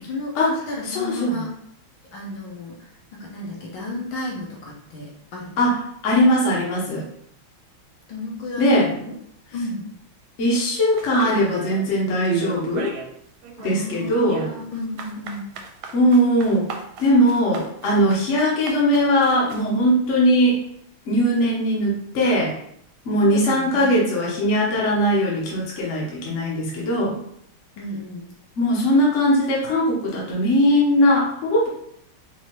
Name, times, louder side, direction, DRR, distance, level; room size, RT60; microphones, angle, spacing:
voice 1, 0.0-0.4 0.7-1.5 2.1-2.8 3.1-5.6 8.1-9.1 9.5-9.8 13.6-15.5 23.2-24.0 27.8-28.2, left 2 dB, 70° left, -3 dB, 1.7 m, -33 dB
voice 2, 0.8-1.4 5.6-7.1 8.6-8.9 10.4-13.0 13.6-14.5 15.9-16.7 17.0-20.6 21.1-22.5 23.0-27.2 28.6-31.7, equal, 45° left, -4 dB, 1.1 m, -20 dB
sound 1, 11.0-11.9 12.2-13.1 13.4-19.7, right 7 dB, 85° right, 1.5 m, -35 dB
4.7 x 2.8 x 2.9 m, 0.69 s
omnidirectional pair, 2.3 m